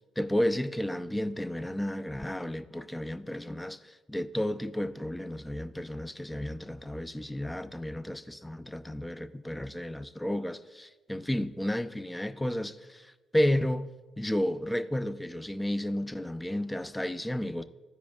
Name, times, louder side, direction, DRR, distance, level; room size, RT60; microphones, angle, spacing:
voice 1, 0.2-13.9 14.2-17.6, left 1 dB, 10° left, 0.4 m, -32 dB
15.0 x 5.0 x 2.3 m
cardioid pair, 90°, 0 cm